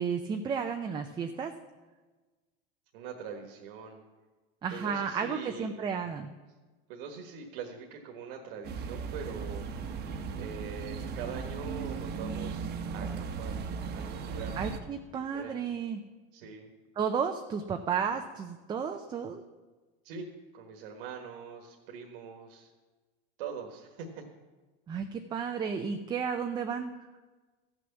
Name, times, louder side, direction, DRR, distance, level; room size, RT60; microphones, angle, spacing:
voice 1, 0.0-1.5 4.6-6.3 14.6-16.0 17.0-19.4 24.9-26.9, right 6 dB, 15° right, 5 dB, 0.4 m, -33 dB
voice 2, 2.9-4.0 4.7-5.8 6.9-9.7 10.3-14.6 15.1-15.6 16.3-16.7 20.0-22.7 23.4-24.2, right 5 dB, 70° right, 2 dB, 1.5 m, -43 dB
sound 1, 8.6-14.8, right 5 dB, 35° right, 1.0 m, -37 dB
14.5 x 6.3 x 7.0 m, 1.3 s
supercardioid pair, 145°, 29 cm